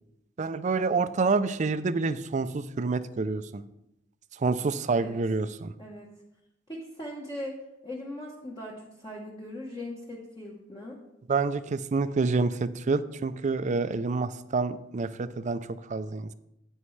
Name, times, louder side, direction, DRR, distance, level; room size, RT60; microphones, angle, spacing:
voice 1, 0.4-3.6 4.4-5.7 11.3-16.3, right 4 dB, 40° right, 13 dB, 0.4 m, -28 dB
voice 2, 5.8-6.1 6.7-7.6 7.8-11.0, left 1 dB, 25° left, -4 dB, 1.1 m, -39 dB
11.0 x 8.1 x 3.2 m, 0.86 s
head